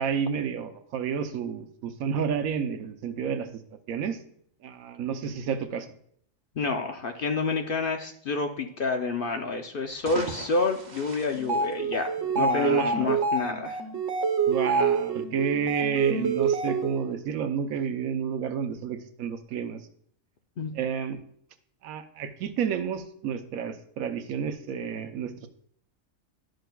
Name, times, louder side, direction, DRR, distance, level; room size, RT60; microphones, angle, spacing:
voice 1, 0.0-3.5 3.9-4.2 4.6-5.9 12.4-13.2 14.5-19.8 20.7-21.2 21.8-25.5, right 7 dB, 90° right, 8 dB, 1.2 m, -30 dB
voice 2, 6.6-12.1 12.3-13.8 20.6-20.7, left 4 dB, 55° left, 5 dB, 0.7 m, -28 dB
sound 1, 9.8-12.4, right 4 dB, 40° right, 0.7 m, -41 dB
sound 2, 11.4-17.1, right 4 dB, 65° right, 1.2 m, -27 dB
11.5 x 6.4 x 2.2 m, 0.66 s
omnidirectional pair, 1.4 m